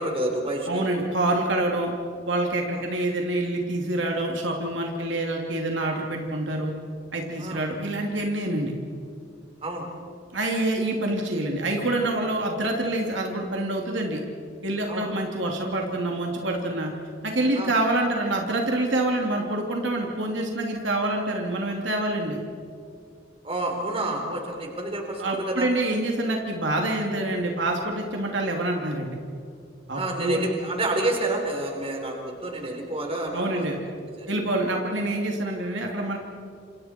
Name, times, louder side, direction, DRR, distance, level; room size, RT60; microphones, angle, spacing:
voice 1, 0.0-0.8 2.7-2.8 7.4-7.6 9.6-9.9 14.9-15.1 17.5-17.7 23.4-25.7 29.9-33.6 34.2-34.3, right 2 dB, 30° right, 2 dB, 3.9 m, -29 dB
voice 2, 0.7-1.9 2.3-6.7 7.1-8.7 10.3-14.2 14.6-16.9 17.2-22.4 25.2-29.2 29.9-30.5 33.3-33.8 34.3-36.2, right 1 dB, 65° right, 0 dB, 2.8 m, -26 dB
29.5 x 27.0 x 4.5 m, 2.4 s
head